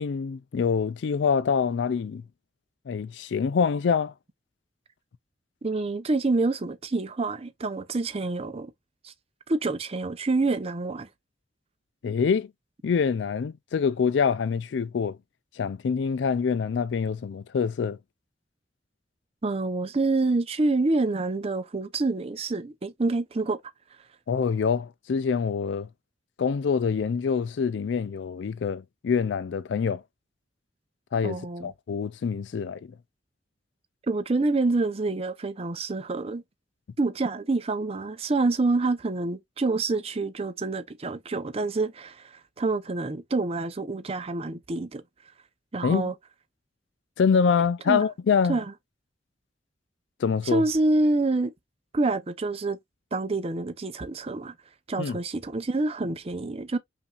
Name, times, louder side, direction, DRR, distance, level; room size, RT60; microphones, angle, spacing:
voice 1, 0.0-2.2 2.9-4.1 12.0-12.5 12.8-15.2 15.6-18.0 24.3-25.9 26.4-30.0 31.1-32.9 45.8-46.0 47.2-48.6 50.2-50.6 55.0-55.2, left 6 dB, 85° left, 0.4 m, -25 dB
voice 2, 5.6-8.7 9.0-9.1 9.5-11.1 19.4-23.6 31.2-31.7 34.1-36.4 37.0-42.3 42.6-45.0 45.7-46.1 47.9-48.0 48.5-48.6 50.4-51.5 51.9-52.8 53.1-54.5 54.9-56.8, right 3 dB, 35° right, 0.6 m, -27 dB
5.5 x 2.6 x 2.3 m
head